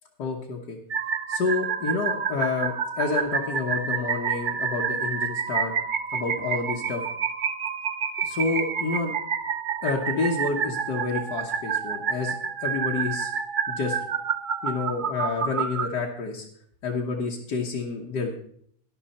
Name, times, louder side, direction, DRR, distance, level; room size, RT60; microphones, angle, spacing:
voice 1, 0.2-0.8 1.3-5.7 6.1-7.0 8.2-9.1 9.8-12.4 12.6-13.3 13.7-14.0 14.6-16.5 16.8-18.3, left 4 dB, 90° left, -2 dB, 1.8 m, -29 dB
sound 1, 0.9-15.9, right 7 dB, 65° right, 0.5 m, -29 dB
11.5 x 11.0 x 4.3 m, 0.63 s
omnidirectional pair, 1.7 m